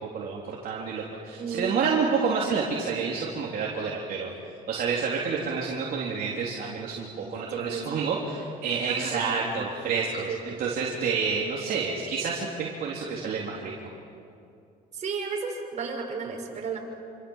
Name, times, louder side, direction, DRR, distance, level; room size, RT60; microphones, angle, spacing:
voice 1, 0.1-4.3 4.7-13.7, right 5 dB, 60° right, -3 dB, 3.6 m, -29 dB
voice 2, 1.4-1.8 7.5-8.1 8.8-9.6 10.3-10.6 14.9-16.8, right 5 dB, 45° right, 0 dB, 6.4 m, -34 dB
27.5 x 26.5 x 7.4 m, 2.6 s
cardioid pair, 110°, 17 cm